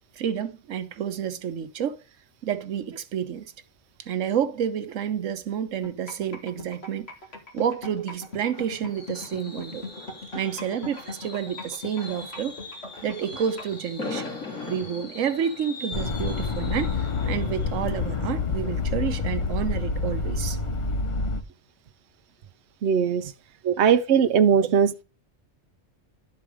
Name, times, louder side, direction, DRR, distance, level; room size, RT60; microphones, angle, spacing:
voice 1, 0.1-2.0 2.4-3.5 4.0-7.1 7.5-9.9 10.3-12.6 13.0-14.3 14.7-20.6 23.6-23.8 24.6-24.7, right 8 dB, 90° right, 1.2 m, -29 dB
sound 1, 5.8-13.8, left 2 dB, 55° left, 2.3 m, -38 dB
Fireworks, 7.9-19.6 19.9-20.2 20.5-20.6, left 3 dB, 85° left, 2.9 m, -41 dB
sound 2, 15.9-21.4, left 4 dB, 40° left, 0.5 m, -27 dB
voice 2, 22.8-23.3 23.8-25.0, right 7 dB, 65° right, 0.9 m, -20 dB
11.5 x 4.7 x 4.8 m
omnidirectional pair, 1.3 m